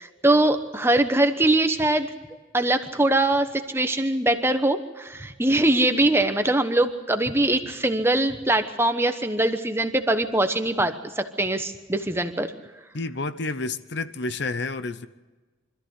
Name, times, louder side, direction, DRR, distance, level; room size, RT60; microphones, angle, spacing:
voice 1, 0.0-2.1 2.5-12.5, right 1 dB, 10° right, 8 dB, 1.0 m, -22 dB
voice 2, 12.9-15.1, left 3 dB, 55° left, 12 dB, 0.8 m, -30 dB
25.0 x 14.0 x 8.1 m, 1.3 s
head